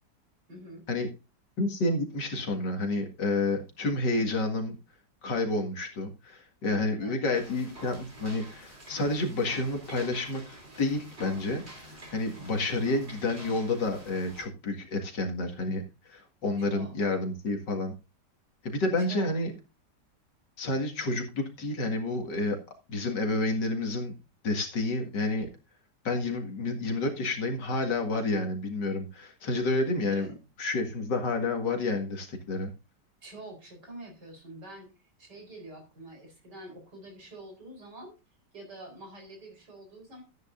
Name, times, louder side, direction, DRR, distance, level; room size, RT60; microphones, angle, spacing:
voice 1, 0.5-0.9 7.0-7.2 16.6-17.0 19.0-19.4 30.1-30.4 33.2-34.9 35.2-38.1 38.5-40.2, right 1 dB, 65° right, 3 dB, 4.9 m, -46 dB
voice 2, 1.6-4.7 5.2-17.9 18.6-19.5 20.6-22.6 22.9-24.1 24.4-25.5 26.0-30.3 30.6-32.7, left 2 dB, 75° left, 3 dB, 2.6 m, -30 dB
sound 1, 7.3-14.4, right 1 dB, 35° right, 3.7 m, -47 dB
13.5 x 9.5 x 2.6 m, 0.28 s
omnidirectional pair, 1.9 m